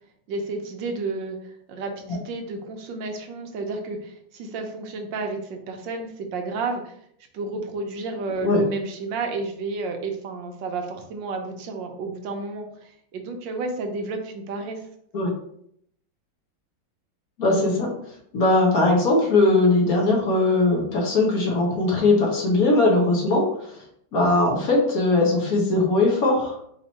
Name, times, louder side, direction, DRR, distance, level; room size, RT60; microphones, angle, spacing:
voice 1, 0.3-6.9 7.3-14.8, right 3 dB, 75° right, 4 dB, 1.4 m, -31 dB
voice 2, 17.4-17.9 18.3-23.5 24.1-26.6, left 2 dB, 55° left, -1 dB, 1.3 m, -20 dB
4.3 x 3.0 x 4.0 m, 0.69 s
omnidirectional pair, 2.1 m